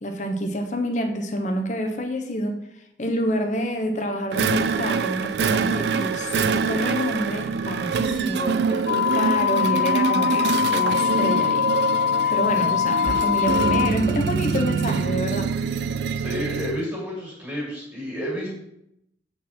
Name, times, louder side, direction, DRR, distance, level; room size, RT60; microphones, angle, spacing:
voice 1, 0.0-2.6 3.0-11.9 12.3-15.5, equal, 40° left, 4 dB, 0.7 m, -28 dB
sound 1, 4.3-16.9, right 5 dB, 60° right, 0.3 m, -25 dB
sound 2, 8.9-13.9, left 9 dB, 55° left, 0.3 m, -22 dB
voice 2, 16.2-18.5, equal, 10° right, -5 dB, 2.4 m, -30 dB
7.8 x 4.2 x 4.4 m, 0.78 s
head